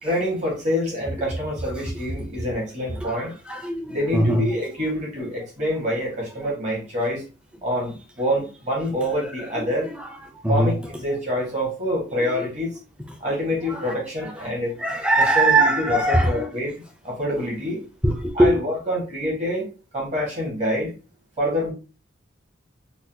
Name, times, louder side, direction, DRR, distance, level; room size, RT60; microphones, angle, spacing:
voice 1, 0.0-3.3 3.9-7.2 7.6-9.9 10.5-12.7 13.2-14.8 15.2-17.8 18.3-20.9 21.4-21.7, equal, 35° right, 1.6 m, -26 dB
voice 2, 3.5-4.4 10.4-10.7 14.8-16.5 18.0-18.5, right 2 dB, 5° right, 0.5 m, -20 dB
3.9 x 2.2 x 2.8 m
head